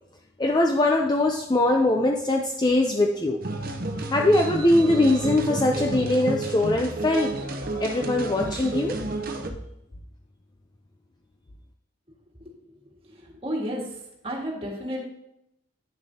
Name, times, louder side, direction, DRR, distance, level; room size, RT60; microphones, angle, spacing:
voice 1, 0.4-3.4 4.1-7.3 7.8-9.0, left 2 dB, 20° left, 1 dB, 0.4 m, -22 dB
sound 1, 3.4-9.5, right 2 dB, 45° right, 0.7 m, -31 dB
voice 2, 13.1-13.8 14.2-15.0, equal, 30° right, -3 dB, 1.7 m, -31 dB
9.9 x 6.6 x 2.8 m, 0.81 s
head